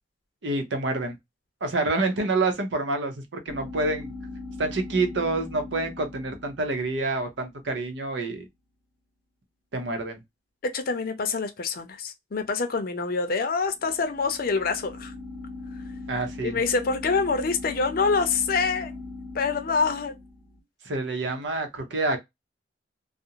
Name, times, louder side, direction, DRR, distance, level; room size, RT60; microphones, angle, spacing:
voice 1, 0.4-1.2 1.6-4.1 4.6-8.5 9.7-10.2 16.1-16.6 20.8-22.2, right 2 dB, 85° right, 0.7 m, -27 dB
sound 1, 3.5-7.5 13.6-20.6, left 3 dB, ahead, 0.7 m, -40 dB
voice 2, 10.6-15.1 16.4-18.9 19.3-20.1, left 4 dB, 55° left, 0.5 m, -26 dB
2.4 x 2.0 x 2.7 m
head